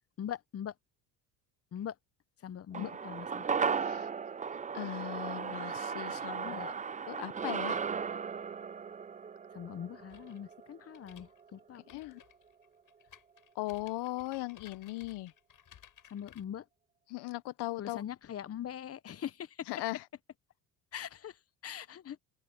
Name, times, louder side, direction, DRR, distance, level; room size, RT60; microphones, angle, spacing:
voice 1, 0.2-0.7 1.7-2.0 2.4-3.5 6.4-6.7 9.5-11.8 16.1-16.6 17.8-19.7 20.9-21.4 21.6-22.2, left 9 dB, 35° left, 0.8 m, -42 dB
sound 1, 2.7-11.2 11.5-11.6, right 6 dB, 20° right, 0.5 m, -36 dB
voice 2, 4.7-6.7 7.1-7.8 11.9-12.2 13.5-15.3 17.1-18.0 19.7-20.0, left 18 dB, 70° left, 1.1 m, -38 dB
sound 2, 10.1-16.4, left 10 dB, 50° left, 7.6 m, -59 dB
open air
cardioid pair, 105°, 41 cm